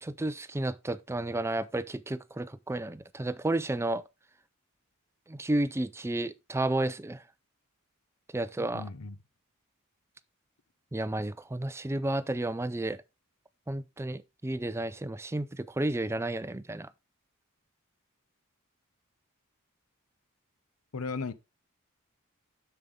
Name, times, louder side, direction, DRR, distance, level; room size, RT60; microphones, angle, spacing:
voice 1, 0.0-4.0 5.3-7.2 8.3-8.9 10.9-13.0 13.7-16.9, right 1 dB, 10° right, 0.4 m, -32 dB
voice 2, 8.7-9.2 20.9-21.3, left 4 dB, 85° left, 0.8 m, -35 dB
7.3 x 6.9 x 3.7 m
head